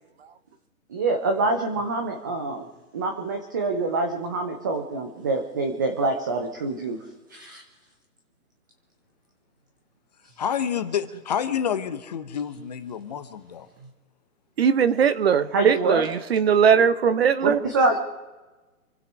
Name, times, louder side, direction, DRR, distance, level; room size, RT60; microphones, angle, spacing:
voice 1, 0.9-2.7 2.9-7.0 7.3-7.6 15.5-16.0 17.4-18.0, right 3 dB, 15° right, 4 dB, 0.6 m, -25 dB
voice 2, 10.4-13.7, left 8 dB, 30° left, 11 dB, 0.8 m, -28 dB
voice 3, 14.6-17.6, right 7 dB, 45° right, 14 dB, 0.9 m, -20 dB
27.5 x 9.3 x 4.6 m, 1.2 s
hypercardioid pair, 150°, 45 cm